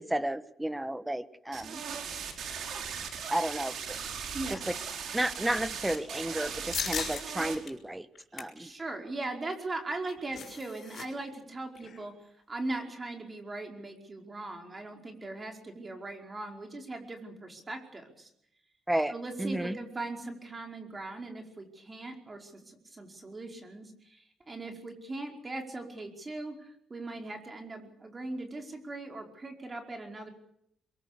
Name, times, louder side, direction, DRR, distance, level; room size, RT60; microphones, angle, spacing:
voice 1, 0.0-1.8 3.3-4.0 4.5-4.6 5.1-8.1 8.3-8.7 18.9-19.1 19.4-19.8, right 1 dB, 10° right, 13 dB, 1.4 m, -32 dB
sound 1, 1.5-7.6, right 6 dB, 70° right, 4.9 m, -38 dB
voice 2, 4.3-4.7 8.6-12.1 12.5-18.3 19.1-30.3, right 2 dB, 25° right, 3 dB, 4.9 m, -39 dB
sound 2, 6.7-7.2 7.7-7.8 8.1-8.6 9.9-11.1 11.3-11.4 11.8-12.0, left 7 dB, 60° left, 6.3 m, -37 dB
23.0 x 23.0 x 6.8 m, 0.75 s
cardioid pair, 90°, 0 cm